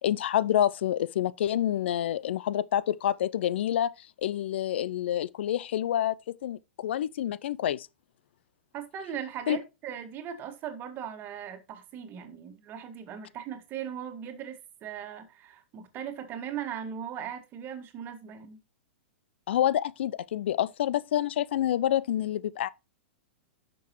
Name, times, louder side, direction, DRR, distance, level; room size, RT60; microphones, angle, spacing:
voice 1, 0.0-7.9 9.5-9.6 19.5-22.7, left 11 dB, 65° left, 0.4 m, -28 dB
voice 2, 8.7-18.6, right 9 dB, 35° right, 1.7 m, -39 dB
10.5 x 6.1 x 3.0 m
hypercardioid pair, 110°, 7 cm